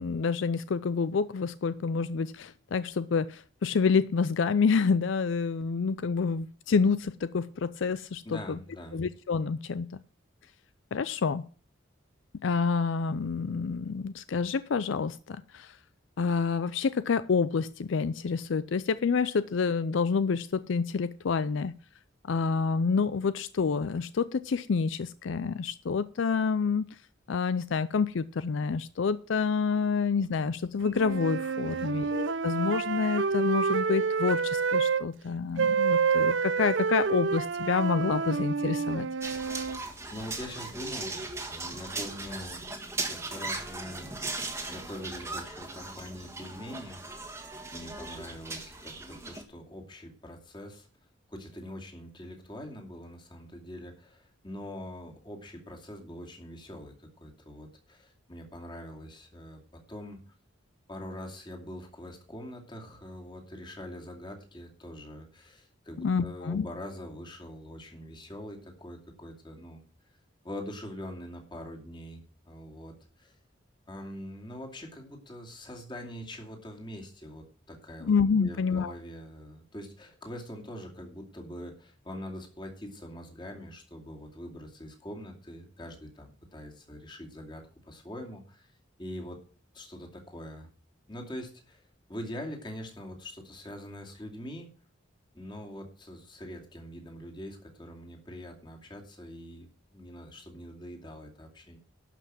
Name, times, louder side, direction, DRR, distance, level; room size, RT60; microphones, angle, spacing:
voice 1, 0.0-8.6 8.9-9.9 10.9-11.4 12.4-15.8 16.2-21.7 22.3-26.9 27.3-39.1 66.0-66.7 78.0-78.9, left 5 dB, 70° left, 15 dB, 0.4 m, -28 dB
voice 2, 8.2-9.0 31.6-32.1 40.1-42.7 43.0-44.1 44.3-47.0 47.7-50.9 51.3-60.3 60.9-69.8 70.4-73.4 73.9-78.1 78.4-88.7 89.0-89.4 89.7-90.7 91.1-94.7 95.3-101.8, equal, 25° left, 2 dB, 2.4 m, -43 dB
sound 1, 30.9-35.0 35.6-39.8, right 5 dB, 65° right, 0.6 m, -28 dB
sound 2, 39.2-49.4, right 3 dB, 15° right, 1.5 m, -38 dB
12.0 x 5.8 x 7.5 m, 0.40 s
head